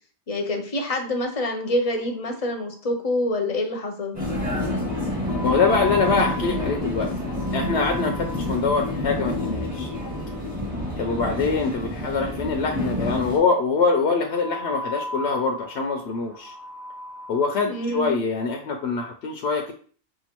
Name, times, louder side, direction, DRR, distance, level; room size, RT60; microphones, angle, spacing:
voice 1, 0.3-4.2 17.6-18.2, left 1 dB, 40° left, 3 dB, 0.6 m, -26 dB
sound 1, 1.0-2.0 2.3-2.4 2.6-2.7 5.3-11.4 14.3-17.9, left 1 dB, 75° right, 1.6 m, -38 dB
Vehicle, 4.1-13.4, left 1 dB, 30° right, 1.6 m, -28 dB
voice 2, 5.4-7.1 7.5-9.9 11.0-16.5 17.3-19.7, left 4 dB, 75° left, 3 dB, 0.8 m, -24 dB
5.5 x 2.5 x 2.9 m, 0.43 s
omnidirectional pair, 1.2 m